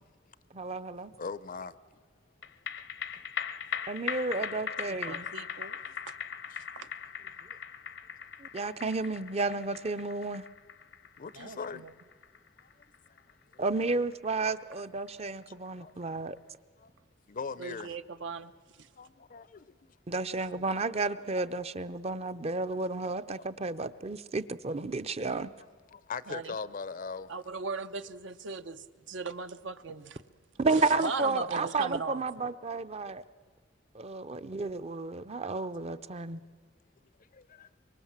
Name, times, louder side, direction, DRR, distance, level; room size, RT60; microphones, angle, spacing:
voice 1, 0.5-1.1 3.9-5.3 8.4-10.4 13.6-16.4 20.1-25.5 30.6-33.2 33.9-36.4, right 3 dB, 35° right, 0.7 m, -32 dB
voice 2, 1.1-1.7 6.5-6.6 11.2-11.9 13.1-13.2 13.5-13.6 15.8-16.0 16.8-16.9 17.3-18.0 18.9-19.9 23.4-23.5 25.9-27.3 36.0-36.1 37.3-37.7, left 5 dB, 45° left, 0.6 m, -40 dB
sound 1, 2.4-15.1 15.4-15.5, left 8 dB, 70° left, 0.9 m, -40 dB
voice 3, 4.9-5.8 6.1-6.2 6.8-6.9 11.3-11.9 17.6-18.9 26.3-26.6 27.3-30.2 30.7-32.2, right 4 dB, 70° right, 0.8 m, -38 dB
24.5 x 23.0 x 7.4 m
head